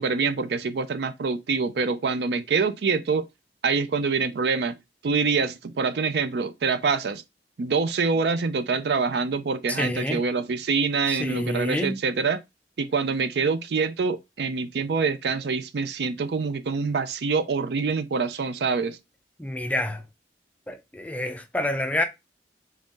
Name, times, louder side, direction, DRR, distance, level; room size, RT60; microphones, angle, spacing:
voice 1, 0.0-3.3 3.6-4.8 5.0-7.2 7.6-12.4 12.8-19.0, right 4 dB, 65° right, 0.4 m, -25 dB
voice 2, 9.7-10.2 11.1-12.0 19.4-20.1 20.7-22.0, left 1 dB, 10° left, 0.4 m, -28 dB
3.5 x 2.7 x 3.5 m
head